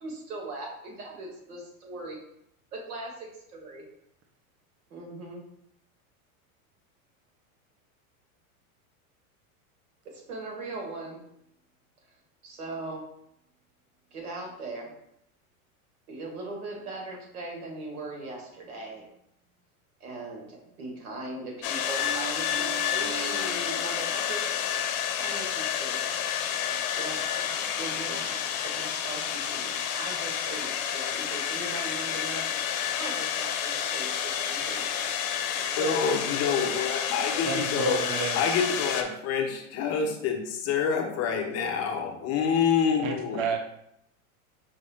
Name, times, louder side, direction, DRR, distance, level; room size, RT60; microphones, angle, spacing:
voice 1, 0.0-2.2 2.7-3.8 4.9-5.4 10.1-11.2 12.4-13.0 14.1-14.9 16.1-19.0 20.0-24.9 25.1-26.0 26.9-35.3 35.6-36.0 36.6-36.7 37.0-37.1, right 2 dB, 90° right, 0 dB, 1.6 m, -39 dB
sound 1, 21.6-39.0, left 9 dB, 70° left, 0.7 m, -30 dB
Piano, 22.0-24.5, right 8 dB, 65° right, 1.1 m, -43 dB
voice 2, 35.8-38.0 38.3-43.4, left 6 dB, 35° left, 3 dB, 0.6 m, -27 dB
voice 3, 37.4-38.4 43.0-43.6, right 5 dB, 40° right, 4 dB, 0.6 m, -30 dB
5.4 x 2.5 x 3.4 m, 0.77 s
supercardioid pair, 130°, 44 cm